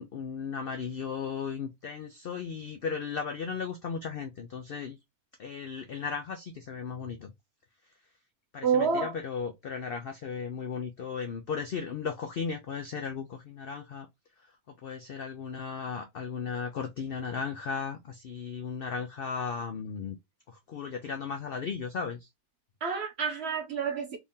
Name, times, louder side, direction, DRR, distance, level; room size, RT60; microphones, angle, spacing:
voice 1, 0.0-5.0 5.4-7.3 8.5-14.1 14.4-14.5 14.8-20.2 20.5-22.3, left 6 dB, 85° left, 0.5 m, -36 dB
voice 2, 8.6-9.1 22.8-24.2, right 6 dB, 60° right, 0.7 m, -28 dB
3.5 x 2.7 x 3.5 m
omnidirectional pair, 1.6 m